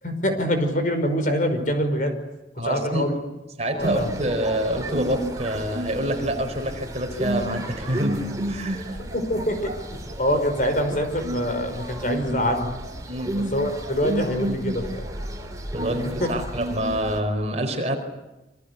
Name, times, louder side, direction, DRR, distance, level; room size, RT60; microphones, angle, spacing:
voice 1, 0.0-2.2 2.6-3.1 3.8-4.1 9.1-9.7 10.2-12.7 13.4-15.1 16.2-16.3, equal, 45° left, 7 dB, 5.4 m, -24 dB
voice 2, 2.6-3.1 3.6-9.0 13.0-13.4 15.7-17.9, right 1 dB, 35° right, 5 dB, 4.6 m, -27 dB
sound 1, 3.8-17.2, right 1 dB, 20° right, 4.0 m, -32 dB
27.5 x 24.5 x 8.4 m, 1.0 s
head